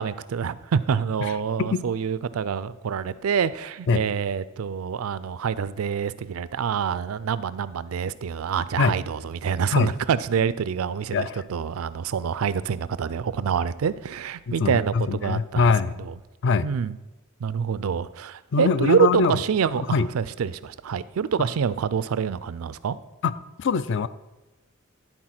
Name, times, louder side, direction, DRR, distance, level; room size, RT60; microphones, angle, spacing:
voice 1, 0.0-15.7 16.0-16.1 16.6-17.0 17.4-23.0, right 7 dB, 85° right, 16 dB, 0.4 m, -26 dB
voice 2, 11.1-11.4 14.5-15.9 16.4-16.7 18.5-19.4 19.9-20.1 23.2-24.1, left 5 dB, 60° left, 14 dB, 0.4 m, -23 dB
11.0 x 4.4 x 5.9 m, 1.1 s
head